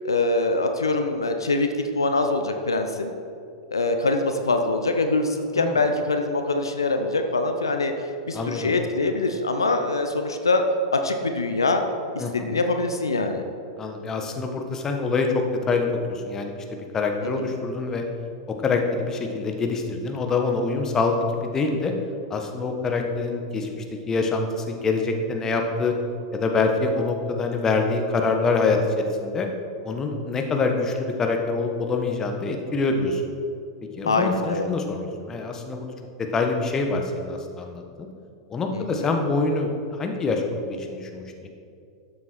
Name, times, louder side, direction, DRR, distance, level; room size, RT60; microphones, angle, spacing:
voice 1, 0.0-1.7 1.9-3.1 3.7-7.9 8.3-10.6 10.9-11.8 12.1-13.4 17.2-17.5 34.1-34.7 38.7-39.1, left 3 dB, 80° left, 6 dB, 0.8 m, -24 dB
voice 2, 8.3-8.7 12.2-12.3 13.8-16.5 16.9-18.0 18.6-21.9 22.3-25.9 26.3-29.5 29.8-33.2 34.0-35.9 36.2-38.1 38.5-39.7 40.0-41.5, left 3 dB, 20° left, 3 dB, 1.4 m, -25 dB
12.5 x 7.9 x 4.5 m, 2.5 s
figure-of-eight pair, 95°, 2 cm